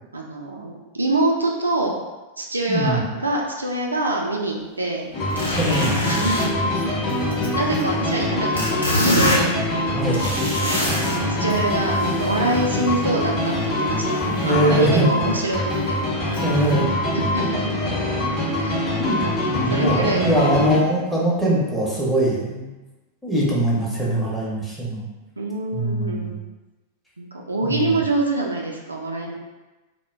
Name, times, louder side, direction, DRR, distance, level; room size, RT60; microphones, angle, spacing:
voice 1, 0.1-1.9 2.4-5.1 6.1-6.9 7.5-9.5 10.6-10.9 11.4-15.6 17.1-17.8 18.6-20.3 25.4-26.4 27.2-29.3, right 2 dB, 80° right, -1 dB, 0.3 m, -25 dB
voice 2, 2.7-3.0 5.5-6.0 9.9-10.4 11.4-11.5 14.2-15.3 16.4-17.2 19.0-19.2 19.5-22.7 23.2-25.0 25.7-26.4 27.6-28.0, right 1 dB, 5° left, -6 dB, 0.7 m, -22 dB
sound 1, 5.1-20.8, left 1 dB, 30° left, 0.9 m, -24 dB
sound 2, 5.3-8.3 8.6-11.2 11.5-12.8 14.2-14.5 14.9-15.0 15.5-15.6 16.3-16.7, equal, 85° left, 0.7 m, -26 dB
2.1 x 2.1 x 3.2 m, 1.1 s
figure-of-eight pair, 90°, 0 cm